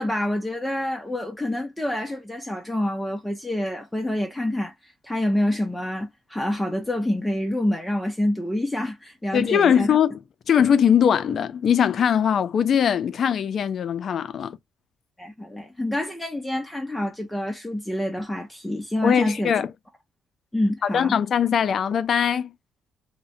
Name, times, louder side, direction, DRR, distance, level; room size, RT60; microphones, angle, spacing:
voice 1, 0.0-9.9 15.2-19.5 20.5-21.2, left 1 dB, 5° left, 0.5 m, -27 dB
voice 2, 9.3-10.2 10.5-14.6 19.0-19.7 20.8-22.5, left 8 dB, 60° left, 0.4 m, -21 dB
2.7 x 2.1 x 2.6 m
cardioid pair, 90°, 0 cm